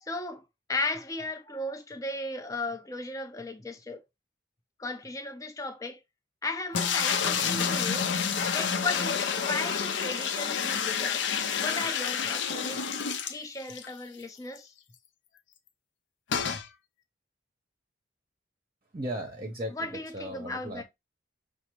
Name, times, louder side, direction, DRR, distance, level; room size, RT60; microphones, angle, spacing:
voice 1, 0.0-4.0 4.8-6.0 6.4-8.1 8.5-11.2 11.6-12.9 13.3-14.7 19.7-20.8, left 2 dB, 15° left, 0.5 m, -35 dB
sound 1, 6.7-13.9 14.2-14.3 14.6-14.7 16.3-16.7, left 7 dB, 75° left, 0.5 m, -29 dB
voice 2, 18.9-20.8, right 1 dB, 30° right, 0.7 m, -37 dB
6.1 x 2.0 x 3.0 m
head